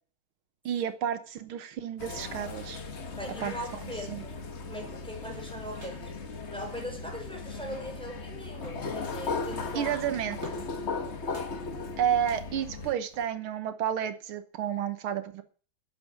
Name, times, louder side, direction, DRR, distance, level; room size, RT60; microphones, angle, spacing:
voice 1, 0.7-2.8 3.4-3.5 4.1-4.2 9.7-10.4 12.0-15.4, right 9 dB, 85° right, 11 dB, 1.9 m, -31 dB
sound 1, 2.0-12.9, left 4 dB, 40° left, 1.3 m, -37 dB
voice 2, 3.1-4.4 4.7-6.2 6.5-10.0, equal, ahead, 1 dB, 4.9 m, -40 dB
sound 2, 5.7-6.1 6.4-6.5 6.6-7.0 7.5-8.0 8.5-8.9 9.4-10.7 11.3-11.6 12.2-12.5 13.1-13.3, right 1 dB, 40° right, 3.6 m, -49 dB
10.5 x 8.8 x 8.6 m, 0.40 s
omnidirectional pair, 2.2 m